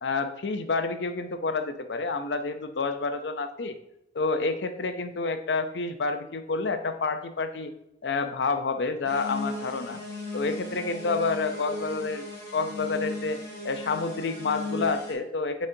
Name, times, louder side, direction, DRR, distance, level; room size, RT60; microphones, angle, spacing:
voice 1, 0.0-3.8 4.1-7.7 8.0-10.0 10.3-12.2 12.5-15.7, left 4 dB, 85° left, 8 dB, 0.6 m, -29 dB
sound 1, 9.1-15.1, left 2 dB, 20° left, 1.9 m, -36 dB
8.6 x 4.2 x 2.7 m, 0.83 s
head